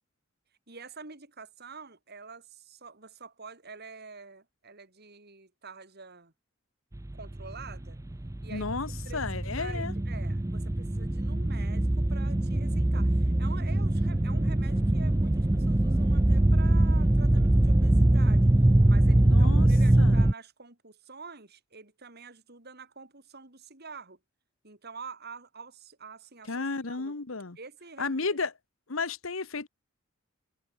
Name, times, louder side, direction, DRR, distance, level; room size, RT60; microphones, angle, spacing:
voice 1, 0.7-6.3 7.1-8.0 8.4-8.8 9.0-18.5 18.9-24.2 24.6-27.1 27.6-28.4, right 4 dB, 55° right, 4.4 m, -47 dB
sound 1, 6.9-20.3, right 1 dB, 15° right, 0.5 m, -23 dB
voice 2, 8.5-9.9 19.2-19.7 20.0-20.2 26.5-27.6 28.0-28.5 28.9-29.7, left 4 dB, 90° left, 1.3 m, -33 dB
head